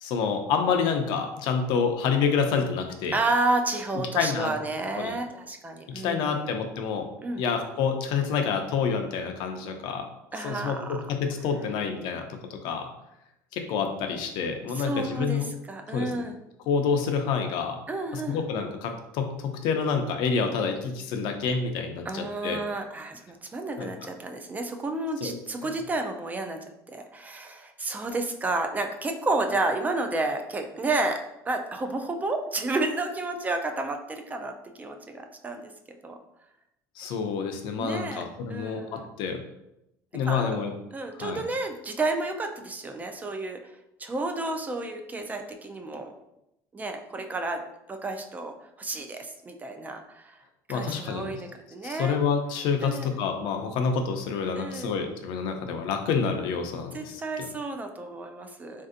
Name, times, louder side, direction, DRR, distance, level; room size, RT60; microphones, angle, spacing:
voice 1, 0.0-3.2 4.1-4.5 4.9-5.1 5.9-7.1 7.4-10.0 10.4-10.8 11.2-12.9 13.5-15.5 15.9-16.1 16.7-17.8 18.1-22.6 23.8-23.9 25.2-25.3 25.6-25.7 37.0-39.4 40.1-40.7 41.2-41.4 50.7-51.4 51.8-57.5, left 6 dB, 70° left, 5 dB, 0.5 m, -28 dB
voice 2, 3.1-6.4 7.2-7.4 10.3-11.0 14.7-16.4 17.9-18.4 22.1-26.6 26.9-36.2 37.8-38.2 38.5-39.1 40.3-40.6 40.9-43.7 44.0-46.1 46.7-47.6 47.9-50.4 50.7-52.2 52.8-53.2 54.6-54.9 56.9-58.9, right 2 dB, 20° right, 5 dB, 0.3 m, -31 dB
3.2 x 2.6 x 2.5 m, 0.85 s
cardioid pair, 115°, 8 cm